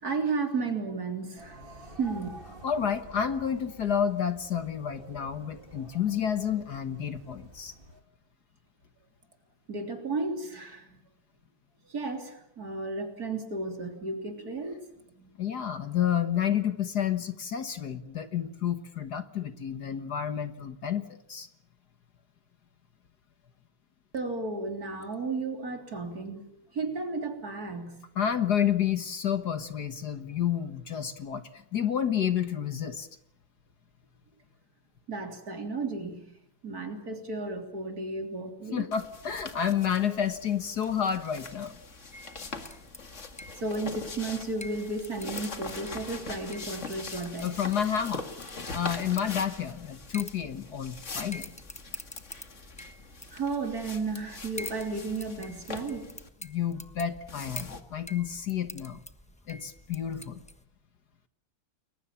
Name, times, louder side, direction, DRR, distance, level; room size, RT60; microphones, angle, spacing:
voice 1, 0.0-2.3 9.7-11.0 11.9-14.8 15.1-15.3 24.1-28.0 35.1-36.3 36.6-38.9 43.6-47.6 53.3-56.2, right 3 dB, 45° right, 5 dB, 3.9 m, -33 dB
sound 1, 1.4-8.0, right 2 dB, 25° right, 3.4 m, -49 dB
voice 2, 2.6-7.7 15.4-21.5 28.2-33.1 38.7-41.7 47.4-48.2 48.7-51.6 56.4-59.0 59.5-60.4, left 9 dB, 55° left, 10 dB, 1.8 m, -30 dB
sound 2, 38.9-56.3 57.3-57.8, left 4 dB, 40° left, 2.3 m, -42 dB
sound 3, 42.1-60.6, left 1 dB, 5° left, 0.9 m, -47 dB
30.0 x 22.0 x 7.2 m, 0.72 s
omnidirectional pair, 2.2 m